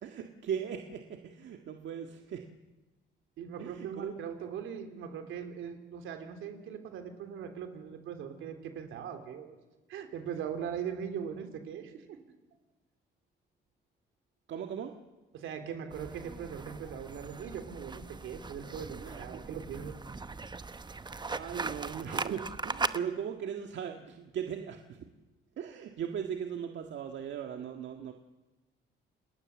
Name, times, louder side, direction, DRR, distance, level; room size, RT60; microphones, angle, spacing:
voice 1, 0.0-2.5 3.6-4.1 14.5-14.9 19.0-19.4 20.9-25.1 25.6-28.1, right 8 dB, 70° right, 4 dB, 1.7 m, -38 dB
voice 2, 3.4-9.6 9.9-12.2 15.3-19.9, right 7 dB, 85° right, 6 dB, 3.5 m, -40 dB
sound 1, 15.9-23.0, right 3 dB, 20° right, 1.0 m, -39 dB
29.0 x 19.5 x 7.3 m, 1.1 s
cardioid pair, 90°, 20 cm